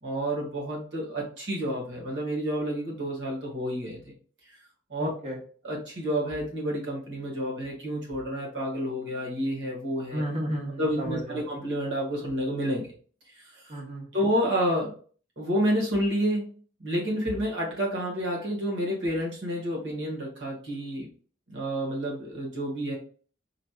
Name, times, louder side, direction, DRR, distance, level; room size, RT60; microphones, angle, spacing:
voice 1, 0.0-4.0 4.9-5.1 5.6-10.2 10.8-12.9 13.3-13.7 14.1-15.0 15.4-16.5 16.8-21.1 21.5-23.0, equal, 80° right, -3 dB, 1.8 m, -29 dB
voice 2, 5.0-5.4 10.1-11.4 13.7-14.1, equal, 40° right, 0 dB, 1.3 m, -33 dB
4.9 x 3.1 x 2.4 m, 0.42 s
head